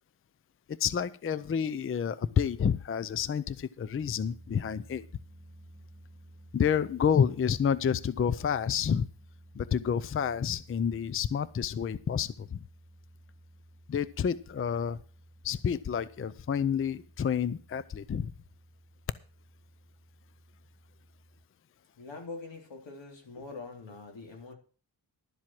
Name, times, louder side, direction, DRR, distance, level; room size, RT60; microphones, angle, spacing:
voice 1, 0.7-5.0 6.5-9.1 9.5-12.6 13.9-15.0 15.4-18.3, left 7 dB, 30° left, 17 dB, 0.5 m, -29 dB
sound 1, 4.0-21.4, right 1 dB, 15° right, 2.5 m, -55 dB
voice 2, 22.0-24.5, left 3 dB, 85° left, 3 dB, 3.6 m, -44 dB
12.0 x 7.5 x 6.0 m, 0.39 s
wide cardioid pair, 135°, 43 cm